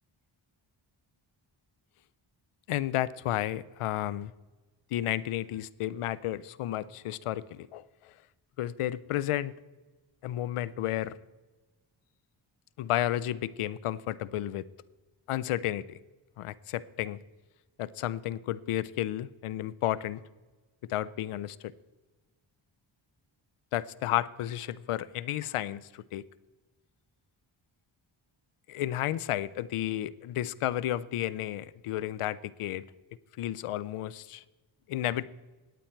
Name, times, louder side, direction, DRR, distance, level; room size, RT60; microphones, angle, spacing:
voice 1, 2.7-4.3 4.9-8.1 8.6-9.5 10.2-11.1 12.8-14.6 15.3-16.0 16.4-17.2 17.8-20.2 20.9-21.7 23.7-26.2 28.7-32.8 33.4-34.4 34.9-35.2, left 13 dB, 85° left, 19 dB, 0.6 m, -32 dB
18.0 x 8.6 x 4.5 m, 1.2 s
cardioid pair, 55°, 50 cm